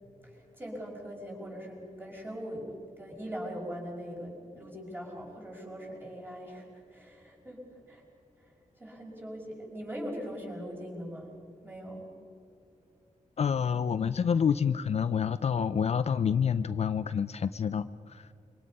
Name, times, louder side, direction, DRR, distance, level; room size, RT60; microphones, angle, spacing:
voice 1, 0.2-8.0 8.4-8.5 8.8-11.4 11.6-12.1, equal, 15° right, -2 dB, 5.6 m, -41 dB
voice 2, 13.4-18.3, left 7 dB, 50° left, 12 dB, 0.5 m, -28 dB
26.0 x 25.0 x 5.5 m, 2.6 s
wide cardioid pair, 165°, 13 cm